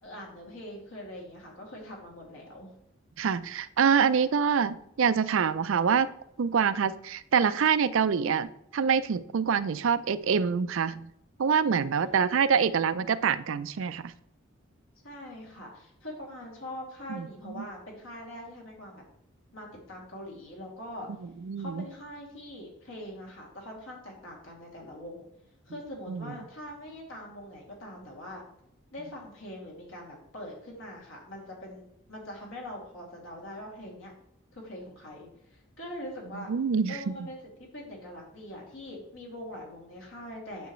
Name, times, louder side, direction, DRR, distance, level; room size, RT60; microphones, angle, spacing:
voice 1, 0.0-2.7 15.0-19.0 19.5-21.1 21.6-25.3 25.6-28.4 28.9-34.1 34.5-36.5 36.9-37.4 37.7-40.7, left 1 dB, 75° left, -2 dB, 2.6 m, -43 dB
voice 2, 3.2-6.1 6.4-11.1 11.4-14.1 17.1-17.6 21.4-21.8 26.1-26.3 36.5-37.0, right 6 dB, 70° right, 14 dB, 0.4 m, -26 dB
9.2 x 6.9 x 3.1 m, 0.76 s
head